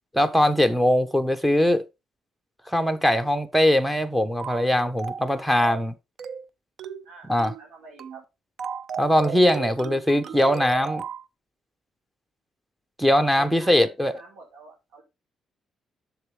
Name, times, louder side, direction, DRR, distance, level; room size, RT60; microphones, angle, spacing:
voice 1, 0.2-1.8 2.7-5.9 7.3-7.5 9.0-11.0 13.0-14.1, equal, ahead, 1.0 m, -21 dB
sound 1, 4.4-4.7 5.0-5.3 5.6-5.9 6.2-6.5 6.8-7.1 7.4-7.7 8.0-8.2 8.6-11.2, right 7 dB, 65° right, 0.5 m, -35 dB
voice 2, 7.6-8.2 13.4-15.0, right 3 dB, 85° right, 3.7 m, -47 dB
7.8 x 7.0 x 3.5 m
cardioid pair, 90°, 0 cm